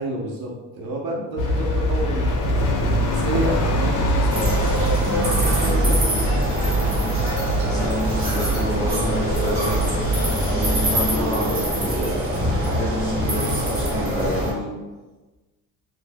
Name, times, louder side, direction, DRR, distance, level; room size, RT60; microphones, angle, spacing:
voice 1, 0.0-4.5 5.1-6.4, right 1 dB, 80° right, -2 dB, 0.7 m, -30 dB
sound 1, 1.4-11.2, equal, 65° left, 0.5 m, -23 dB
sound 2, 4.3-14.5, equal, 40° right, 0.6 m, -24 dB
voice 2, 7.7-9.9 10.5-14.7, left 1 dB, 10° left, -7 dB, 0.4 m, -30 dB
2.2 x 2.1 x 3.3 m, 1.2 s
cardioid pair, 180°, 35 cm